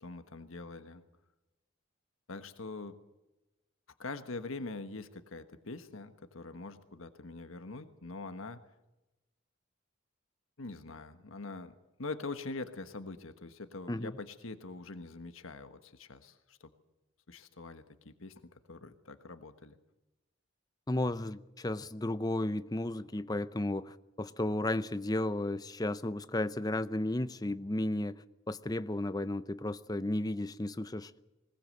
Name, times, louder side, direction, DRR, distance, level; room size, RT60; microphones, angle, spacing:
voice 1, 0.0-1.0 2.3-2.9 4.0-8.6 10.6-16.7 17.3-19.7, left 3 dB, 85° left, 1.4 m, -44 dB
voice 2, 20.9-31.1, left 1 dB, 20° left, 0.6 m, -34 dB
20.5 x 20.0 x 7.8 m
head